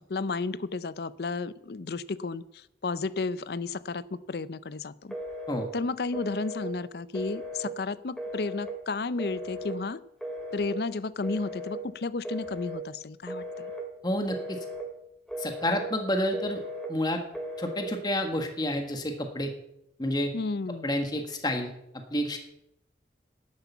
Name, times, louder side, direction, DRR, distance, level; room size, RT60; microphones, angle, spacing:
voice 1, 0.1-5.2 5.7-10.0 10.5-13.7 20.3-20.9, left 3 dB, 60° left, 17 dB, 0.5 m, -32 dB
Telephone, 5.1-5.7 6.1-6.7 7.1-7.7 8.2-8.7 9.2-9.8 10.2-10.8 11.2-11.8 12.2-12.8 13.3-13.8 14.3-14.9 15.3-15.9 16.3-16.9 17.3-17.9, equal, 5° left, 2.2 m, -37 dB
voice 2, 14.0-14.6 15.4-16.6 16.9-17.2 17.6-19.5 20.0-20.3 20.8-21.7 22.1-22.4, left 1 dB, 25° left, 5 dB, 1.5 m, -29 dB
11.5 x 8.0 x 7.1 m, 0.78 s
head